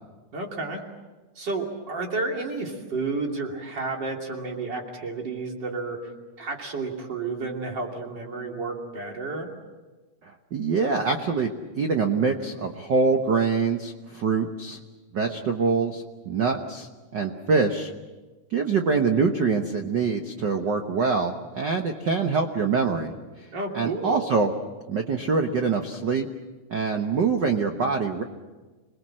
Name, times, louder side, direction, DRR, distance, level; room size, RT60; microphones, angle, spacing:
voice 1, 0.3-0.8 1.3-6.1 6.4-9.5 23.5-24.2, right 3 dB, 35° right, 1 dB, 3.3 m, -31 dB
voice 2, 10.5-14.8 15.1-17.9 18.5-23.1 23.7-24.5 24.9-26.3 26.7-28.2, right 4 dB, 80° right, 4 dB, 0.9 m, -24 dB
27.0 x 20.0 x 7.6 m, 1.3 s
omnidirectional pair, 3.7 m